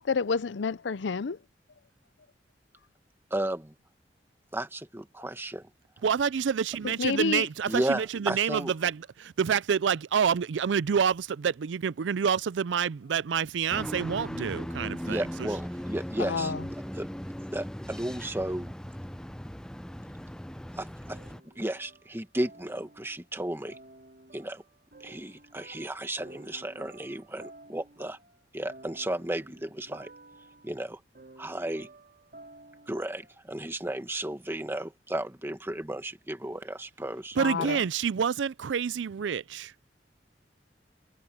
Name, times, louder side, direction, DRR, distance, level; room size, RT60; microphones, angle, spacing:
voice 1, 0.0-1.4 6.8-7.5 16.2-16.7 37.4-37.8, left 5 dB, 85° left, 0.6 m, -29 dB
voice 2, 3.3-3.7 4.5-5.7 7.7-8.7 15.0-17.1 17.4-18.7 20.8-21.2 21.5-23.8 24.3-24.6 25.0-28.2 28.5-30.1 30.6-31.0 31.4-31.9 32.9-37.7, right 1 dB, 15° right, 1.4 m, -34 dB
voice 3, 6.0-15.5 37.4-39.7, right 7 dB, 90° right, 0.4 m, -28 dB
sound 1, 13.7-21.4, equal, 5° left, 0.6 m, -38 dB
sound 2, 21.0-23.3 23.7-33.4, right 2 dB, 55° right, 2.4 m, -52 dB
head